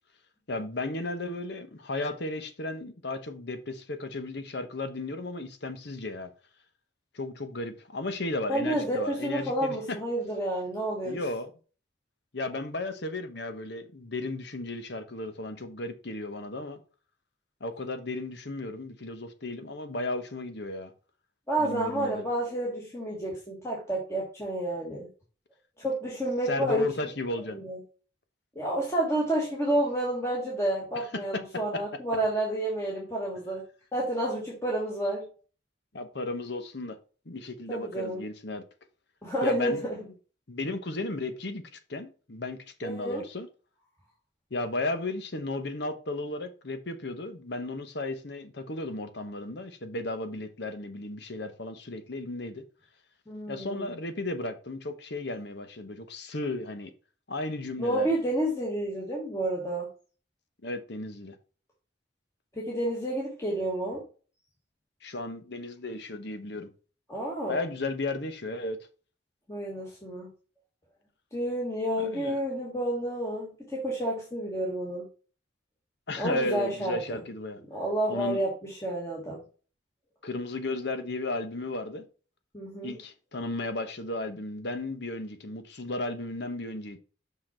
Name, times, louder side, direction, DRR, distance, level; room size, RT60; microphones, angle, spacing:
voice 1, 0.5-6.3 7.1-10.0 11.0-11.5 12.3-16.8 17.6-20.9 21.6-22.2 26.5-27.6 31.3-31.4 31.7-31.8 35.9-37.0 37.3-38.6 39.4-39.9 40.5-41.6 41.9-43.5 44.5-52.6 53.5-56.9 57.3-58.1 60.6-61.4 65.0-66.7 67.5-68.8 72.0-72.4 76.1-77.6 78.1-78.4 80.2-82.1 82.8-87.0, left 2 dB, 60° left, 1.0 m, -34 dB
voice 2, 8.5-11.2 21.5-25.1 25.8-26.9 27.5-27.8 28.5-33.6 33.9-35.2 37.7-38.2 39.2-40.0 42.8-43.2 53.3-53.9 57.8-59.9 62.5-64.0 67.1-67.6 69.5-70.3 71.3-75.1 76.2-77.2 77.7-79.4 82.5-83.0, right 1 dB, 15° left, 1.7 m, -30 dB
5.8 x 5.7 x 4.4 m
head